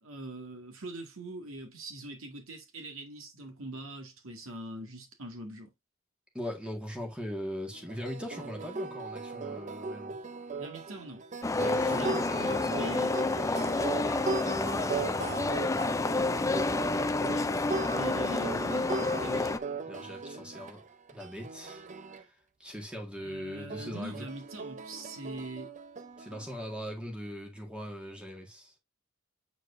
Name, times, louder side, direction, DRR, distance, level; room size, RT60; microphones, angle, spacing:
voice 1, 0.0-5.7 10.6-11.2 11.9-13.2 17.2-17.5 17.9-18.9 19.2-19.6 23.2-25.7, right 2 dB, 65° right, 2.0 m, -42 dB
voice 2, 6.3-10.2 11.6-13.7 14.0-15.8 19.8-20.8 21.1-21.8 22.1-22.3 22.6-24.2 26.2-28.7, equal, 5° right, 1.9 m, -41 dB
sound 1, 7.7-22.2 23.7-26.8, right 3 dB, 35° right, 0.6 m, -38 dB
sound 2, 11.4-19.6, left 3 dB, 15° left, 0.4 m, -29 dB
8.2 x 4.5 x 2.6 m
head